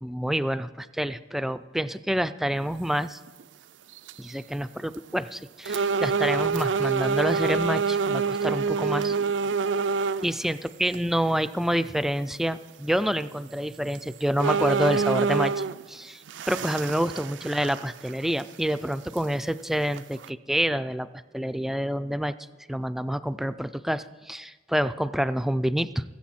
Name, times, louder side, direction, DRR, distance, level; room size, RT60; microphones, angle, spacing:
voice 1, 0.0-3.2 4.2-9.2 10.2-21.1 21.3-22.3 22.7-26.0, equal, ahead, 12 dB, 0.3 m, -28 dB
sound 1, 3.3-3.4 3.9-4.3 4.9-5.0 5.7-10.3 10.9-11.0 13.4-13.5 14.0-14.1 14.4-15.8 16.3-18.1 18.4-18.5 19.2-19.3 19.9-20.3, right 5 dB, 90° right, 0.4 m, -26 dB
21.0 x 7.9 x 4.3 m, 1.2 s
head